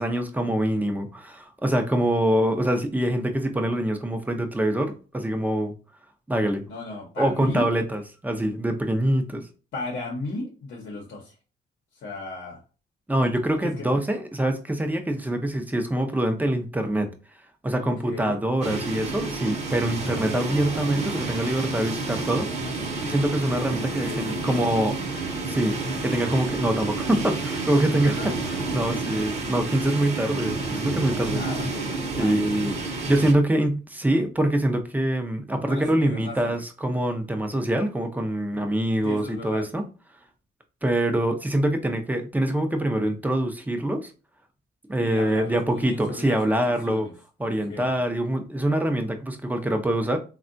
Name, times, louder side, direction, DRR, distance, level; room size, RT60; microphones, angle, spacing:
voice 1, 0.0-5.7 6.3-6.6 7.2-9.4 13.1-17.1 17.6-22.6 23.0-25.0 25.5-28.3 28.7-31.4 32.2-39.8 40.8-44.1 44.9-47.1 47.4-50.2, right 1 dB, 10° right, 0.5 m, -24 dB
voice 2, 6.7-7.7 9.7-11.4 12.0-12.6 13.6-13.9 17.8-18.4 22.5-22.8 24.0-25.0 27.9-28.3 31.1-33.1 35.7-36.6 39.0-39.7 45.0-46.5 46.8-47.1 47.4-48.0, left 2 dB, 65° left, 0.8 m, -36 dB
sound 1, 18.6-33.3, right 3 dB, 35° right, 0.9 m, -30 dB
3.4 x 2.2 x 2.6 m
cardioid pair, 90°, 20 cm